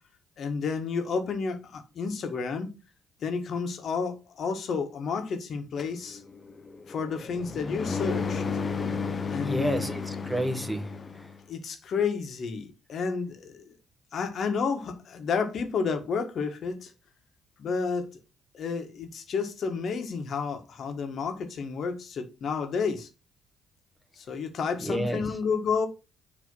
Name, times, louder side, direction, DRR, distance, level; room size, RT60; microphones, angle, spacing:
voice 1, 0.4-2.7 3.2-6.2 6.9-8.4 9.3-9.9 11.5-13.7 14.1-16.9 17.6-18.1 18.5-23.1 24.2-25.9, left 5 dB, 60° left, 1.6 m, -31 dB
sound 1, 5.8-11.4, left 5 dB, 40° left, 0.8 m, -33 dB
voice 2, 9.4-10.9 24.8-25.3, right 1 dB, 5° right, 1.4 m, -30 dB
6.7 x 3.4 x 5.4 m
hypercardioid pair, 55°, 0 cm